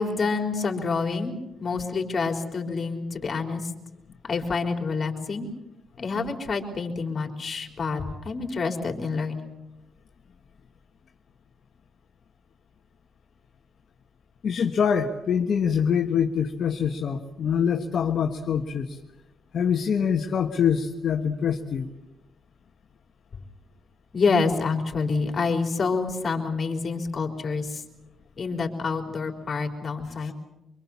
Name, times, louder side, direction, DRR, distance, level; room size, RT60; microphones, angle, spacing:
voice 1, 0.0-3.7 4.2-5.5 6.0-9.4 24.1-27.8 28.4-30.3, left 4 dB, 40° left, 4 dB, 4.0 m, -27 dB
voice 2, 14.4-19.0 19.5-21.9 30.2-30.3, left 7 dB, 55° left, 3 dB, 1.5 m, -25 dB
24.5 x 23.5 x 7.3 m, 0.99 s
cardioid pair, 90°, 0 cm